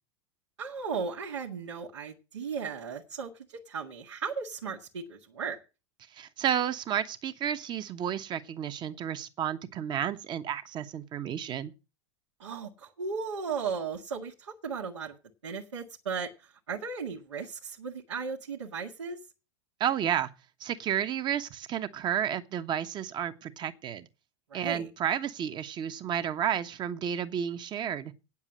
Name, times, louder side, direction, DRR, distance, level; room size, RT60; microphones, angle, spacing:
voice 1, 0.6-5.6 12.4-15.1 15.4-19.2 24.5-24.9, right 5 dB, 75° right, 1.7 m, -36 dB
voice 2, 6.2-11.7 19.8-20.3 20.6-24.1 24.5-28.1, right 9 dB, 30° right, 1.1 m, -31 dB
9.0 x 7.3 x 7.5 m
figure-of-eight pair, 95°, 15 cm